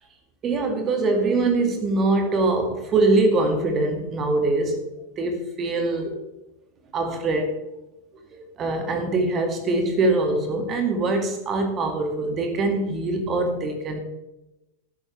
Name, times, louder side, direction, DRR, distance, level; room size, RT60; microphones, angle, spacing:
voice 1, 0.4-4.9 5.2-6.2 6.9-7.6 8.3-14.0, right 2 dB, 30° right, 5 dB, 2.1 m, -23 dB
16.5 x 11.5 x 3.4 m, 0.95 s
figure-of-eight pair, 90°, 0 cm